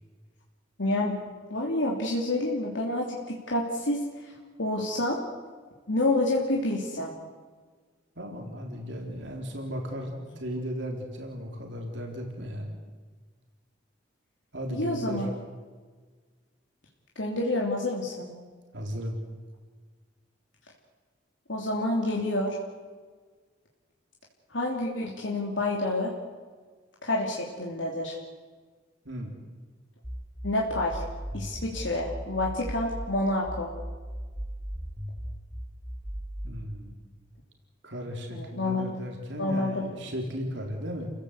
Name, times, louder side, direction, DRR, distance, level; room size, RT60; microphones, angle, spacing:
voice 1, 0.8-1.2 1.5-4.3 4.6-5.2 5.9-7.1 14.7-15.3 17.1-18.3 21.5-22.6 24.5-26.1 27.0-28.2 30.4-31.0 31.3-33.7 38.3-38.9 39.4-39.9, left 2 dB, 80° left, -2 dB, 3.3 m, -28 dB
voice 2, 8.2-12.7 14.5-15.3 18.7-19.2 29.0-29.4 36.4-36.9 37.8-41.1, equal, 70° right, 1 dB, 4.0 m, -35 dB
sound 1, 30.0-33.1 33.5-36.5, equal, 5° right, 3.4 m, -37 dB
30.0 x 16.5 x 8.3 m, 1.5 s
head